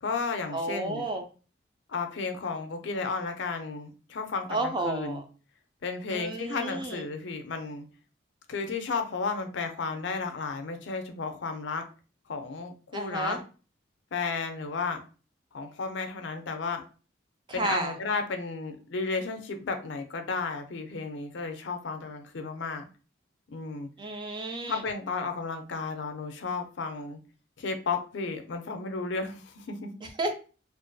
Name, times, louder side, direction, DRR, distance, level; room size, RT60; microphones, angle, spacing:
voice 1, 0.0-1.1 1.9-5.2 5.8-7.8 8.5-11.8 12.3-13.4 14.1-15.0 15.5-16.8 17.5-22.9 23.5-23.9 24.7-27.2 27.6-29.9, left 4 dB, 70° left, 6 dB, 0.4 m, -33 dB
voice 2, 0.5-1.2 4.5-5.2 6.1-7.0 12.9-13.4 17.5-17.9 24.0-24.8 30.2-30.3, right 2 dB, 25° right, 5 dB, 0.3 m, -31 dB
2.4 x 2.2 x 2.5 m, 0.36 s
head